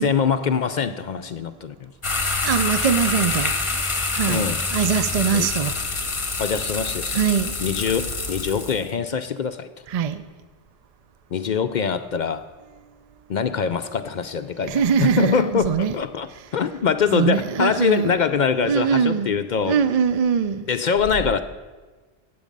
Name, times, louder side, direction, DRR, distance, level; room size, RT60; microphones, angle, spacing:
voice 1, 0.0-1.9 4.3-4.6 5.3-5.5 6.4-7.1 7.6-9.7 11.3-12.4 13.3-19.8 20.7-21.4, left 6 dB, 55° left, 0.5 m, -23 dB
sound 1, 2.0-8.8, left 3 dB, 30° left, 1.0 m, -26 dB
voice 2, 2.4-3.5 4.1-5.7 7.1-7.5 9.9-10.2 14.6-15.9 17.1-18.1 18.6-19.3 19.6-20.7, right 7 dB, 50° right, 0.5 m, -22 dB
15.5 x 8.6 x 5.3 m
omnidirectional pair, 1.1 m